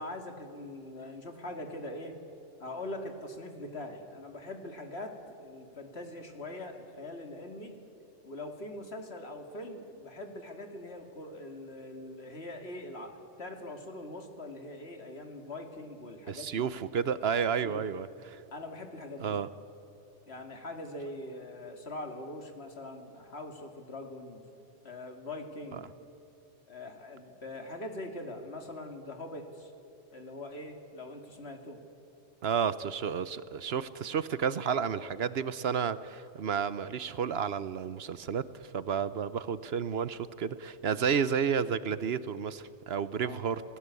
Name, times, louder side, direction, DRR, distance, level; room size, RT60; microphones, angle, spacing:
voice 1, 0.0-2.2 2.6-7.8 8.2-16.7 17.6-17.8 18.5-19.4 20.3-24.4 24.8-25.8 26.7-29.7 30.1-31.8 43.2-43.5, left 1 dB, 65° left, 5 dB, 2.6 m, -42 dB
voice 2, 16.3-18.4 19.2-19.5 25.7-25.8 32.4-43.6, right 7 dB, 65° right, 15 dB, 1.0 m, -31 dB
27.0 x 18.0 x 8.3 m, 2.9 s
omnidirectional pair, 1.1 m